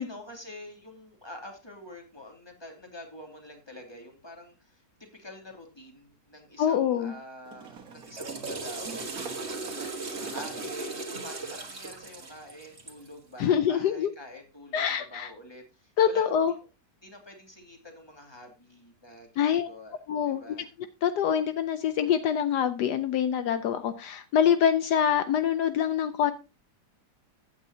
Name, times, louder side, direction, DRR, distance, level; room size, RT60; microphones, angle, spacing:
voice 1, 0.0-16.3 17.0-20.0 20.2-20.7, left 1 dB, 15° left, 2 dB, 2.7 m, -47 dB
sound 1, 5.5-5.6 7.4-10.8, right 6 dB, 60° right, 1.9 m, -46 dB
voice 2, 6.6-7.1 13.4-14.1 14.7-15.3 16.0-16.5 19.4-19.7 20.1-20.4 21.0-26.3, left 9 dB, 75° left, 10 dB, 1.3 m, -25 dB
Water / Toilet flush, 7.9-13.1, right 3 dB, 40° right, 1.9 m, -37 dB
15.0 x 8.9 x 2.8 m, 0.28 s
omnidirectional pair, 1.8 m